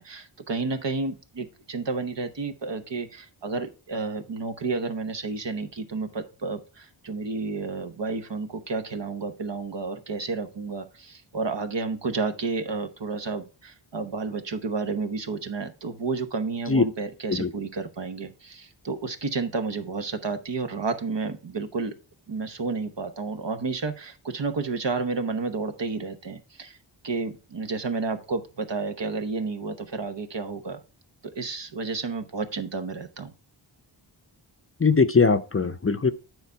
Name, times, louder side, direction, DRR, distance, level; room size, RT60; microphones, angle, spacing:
voice 1, 0.0-21.9 22.3-26.8 27.0-30.8 31.4-33.3, right 4 dB, 60° right, 1.1 m, -31 dB
voice 2, 34.8-36.1, left 4 dB, 30° left, 0.6 m, -20 dB
9.4 x 4.0 x 4.5 m
wide cardioid pair, 60°, 48 cm